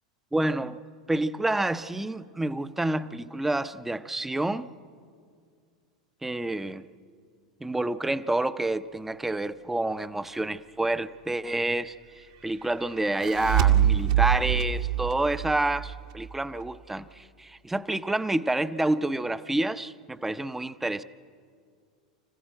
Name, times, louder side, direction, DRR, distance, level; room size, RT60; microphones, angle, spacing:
voice 1, 0.3-0.8 1.1-4.7 6.2-6.9 7.6-21.0, right 2 dB, 5° right, 0.6 m, -28 dB
sound 1, 13.0-16.3, right 10 dB, 60° right, 1.6 m, -25 dB
26.0 x 15.0 x 7.7 m
figure-of-eight pair, 85°, 4 cm